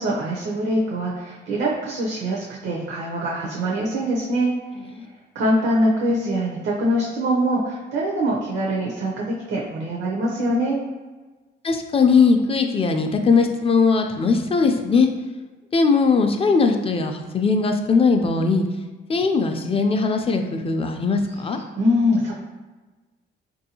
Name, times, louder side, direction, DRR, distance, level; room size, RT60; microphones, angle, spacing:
voice 1, 0.0-4.5 5.3-10.8 21.8-22.3, equal, 70° right, -3 dB, 0.7 m, -23 dB
voice 2, 11.6-15.1 15.7-18.6 19.1-21.6, left 4 dB, 30° left, 5 dB, 0.4 m, -19 dB
3.5 x 2.6 x 2.7 m, 1.3 s
cardioid pair, 90°, 20 cm